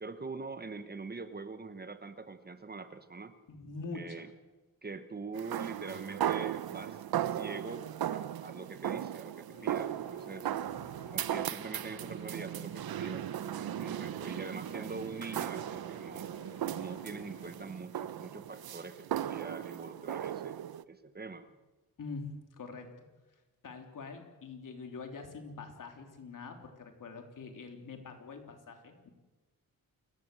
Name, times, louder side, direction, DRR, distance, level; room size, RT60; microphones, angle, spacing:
voice 1, 0.0-3.3 3.9-4.3 4.8-10.5 11.1-13.2 13.5-16.3 16.7-20.6 20.9-21.4, right 4 dB, 25° right, 10 dB, 1.0 m, -43 dB
voice 2, 3.5-4.2 22.0-22.9 23.6-29.1, left 4 dB, 60° left, 4 dB, 3.4 m, -44 dB
sound 1, 5.3-20.8, right 11 dB, 90° right, 0.8 m, -37 dB
sound 2, 9.5-17.5, left 3 dB, 45° left, 4.0 m, -54 dB
29.0 x 15.0 x 7.8 m, 1.2 s
wide cardioid pair, 165°, 36 cm